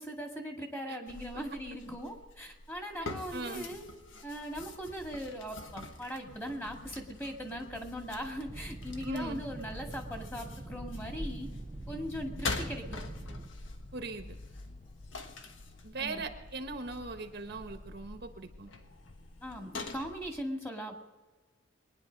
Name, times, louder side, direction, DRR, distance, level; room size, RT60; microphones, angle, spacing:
voice 1, 0.0-3.9 4.2-11.5 11.9-13.0 16.0-16.2 19.4-20.9, equal, 15° left, 3 dB, 2.0 m, -40 dB
sound 1, 1.1-20.4, left 3 dB, 75° left, 1.4 m, -45 dB
voice 2, 3.0-3.7 9.0-9.4 13.9-14.4 15.8-18.7, right 3 dB, 55° right, 6 dB, 1.2 m, -40 dB
sound 2, 6.8-19.6, left 2 dB, 30° left, 0.7 m, -53 dB
sound 3, 8.4-13.5, right 2 dB, 20° right, 0.4 m, -44 dB
22.5 x 10.0 x 5.3 m, 1.3 s
head